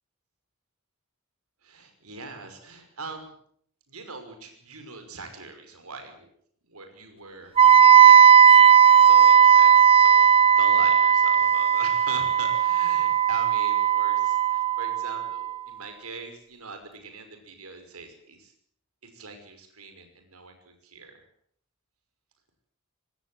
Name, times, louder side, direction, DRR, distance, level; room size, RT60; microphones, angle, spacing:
voice 1, 1.6-3.3 3.9-6.3 6.7-8.6 9.0-18.5 19.0-21.2, right 4 dB, 85° right, 6 dB, 5.8 m, -42 dB
Wind instrument woodwind instrument, 7.6-15.5, right 8 dB, 25° right, 1.1 m, -16 dB
25.0 x 18.0 x 7.8 m, 0.64 s
head